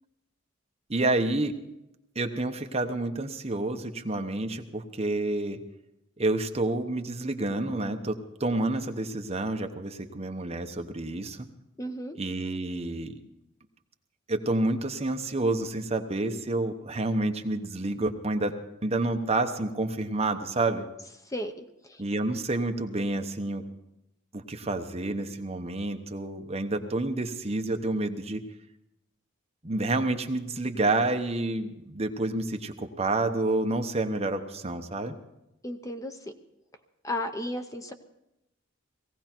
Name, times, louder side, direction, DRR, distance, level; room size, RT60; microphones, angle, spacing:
voice 1, 0.9-1.5 2.1-5.6 6.2-11.5 12.2-13.2 14.3-18.5 18.8-20.8 22.0-23.7 24.3-28.4 29.6-35.1, right 2 dB, 30° right, 6 dB, 1.0 m, -29 dB
voice 2, 11.8-12.2 21.2-22.0 35.6-36.3 37.0-37.9, left 1 dB, 15° left, 7 dB, 0.8 m, -34 dB
18.5 x 16.5 x 4.5 m, 0.88 s
head